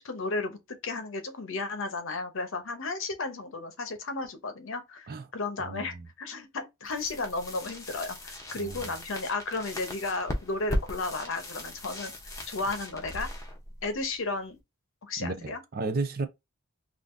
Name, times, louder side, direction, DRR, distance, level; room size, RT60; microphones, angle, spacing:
voice 1, 0.0-12.1 12.5-13.3 13.8-14.6 15.0-15.6, left 3 dB, 60° left, 0.7 m, -34 dB
voice 2, 5.6-6.1 8.6-8.9 15.2-16.3, right 3 dB, 45° right, 0.5 m, -33 dB
sound 1, 6.8-14.6, left 1 dB, 15° left, 0.7 m, -38 dB
3.6 x 2.5 x 2.5 m
head